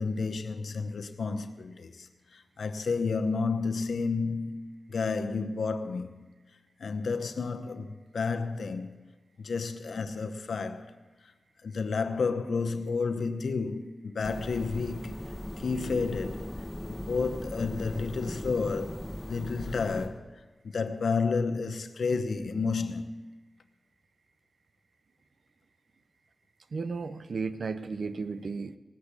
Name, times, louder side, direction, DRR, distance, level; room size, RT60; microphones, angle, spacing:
voice 1, 0.0-2.1 2.3-6.1 6.8-8.9 9.4-10.9 11.6-15.1 15.6-16.5 16.9-20.3 20.6-23.2, left 4 dB, 85° left, 0.9 m, -31 dB
sound 1, 14.2-20.1, left 1 dB, ahead, 2.2 m, -39 dB
voice 2, 26.7-28.8, right 4 dB, 75° right, 0.7 m, -34 dB
18.5 x 7.2 x 8.3 m
wide cardioid pair, 65°, 0 cm